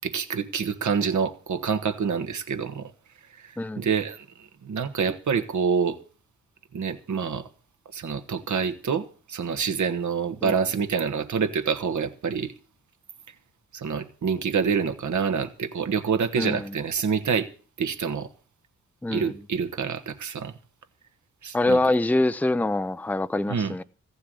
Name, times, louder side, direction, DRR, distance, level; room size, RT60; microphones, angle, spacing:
voice 1, 0.0-2.8 3.4-6.0 6.7-7.5 7.9-12.5 13.7-17.5 17.8-18.3 19.1-20.5 21.4-21.8 23.5-23.7, right 6 dB, 65° right, 1.5 m, -27 dB
voice 2, 16.4-16.7 19.0-19.3 21.5-23.8, left 2 dB, 5° left, 0.6 m, -24 dB
15.0 x 7.1 x 8.3 m
supercardioid pair, 45°, 31 cm